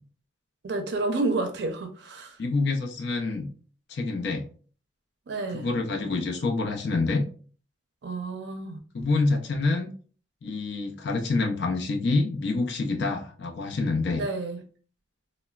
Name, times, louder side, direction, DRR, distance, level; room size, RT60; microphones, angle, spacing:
voice 1, 0.6-2.4 5.3-5.7 8.0-8.8 14.2-14.6, right 2 dB, 65° right, 0.4 m, -30 dB
voice 2, 2.4-3.5 3.9-4.5 5.5-7.2 8.9-9.9 10.4-14.2, left 3 dB, 65° left, 0.4 m, -27 dB
3.0 x 2.0 x 2.3 m
head